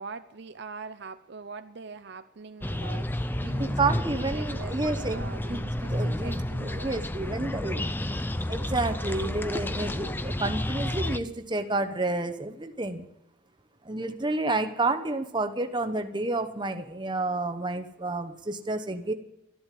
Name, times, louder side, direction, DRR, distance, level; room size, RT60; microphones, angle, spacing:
voice 1, 0.0-7.1, right 4 dB, 55° right, 10 dB, 0.6 m, -43 dB
sound 1, 2.6-11.2, left 1 dB, 10° left, 0.5 m, -31 dB
voice 2, 3.6-7.8 8.5-13.1 13.8-19.1, right 2 dB, 20° right, 7 dB, 0.9 m, -30 dB
13.0 x 11.5 x 8.3 m, 0.85 s
head